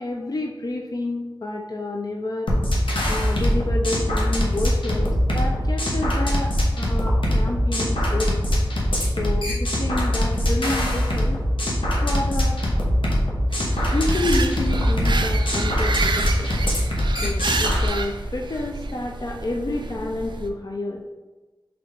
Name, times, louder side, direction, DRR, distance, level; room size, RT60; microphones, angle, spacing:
voice 1, 0.0-2.5 3.0-8.4 9.1-11.4 12.0-12.6 13.9-16.5 17.2-21.0, left 2 dB, 50° left, 0 dB, 0.4 m, -29 dB
sound 1, 2.5-17.9, equal, 80° left, 0.9 m, -22 dB
sound 2, 13.5-20.5, right 3 dB, 65° right, 0.4 m, -30 dB
4.0 x 3.3 x 3.3 m, 1.2 s
wide cardioid pair, 50°, 9 cm